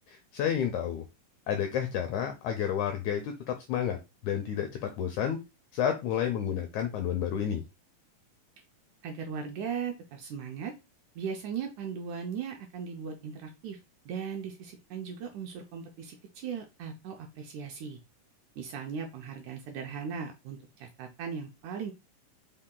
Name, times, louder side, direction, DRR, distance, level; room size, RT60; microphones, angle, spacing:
voice 1, 0.1-1.0 1.5-4.0 4.2-5.4 5.7-7.6, left 9 dB, 80° left, 5 dB, 1.7 m, -30 dB
voice 2, 9.0-10.7 11.2-13.8 14.1-18.0 18.6-21.9, right 6 dB, 80° right, 3 dB, 1.8 m, -38 dB
5.5 x 2.2 x 3.7 m, 0.25 s
omnidirectional pair, 3.9 m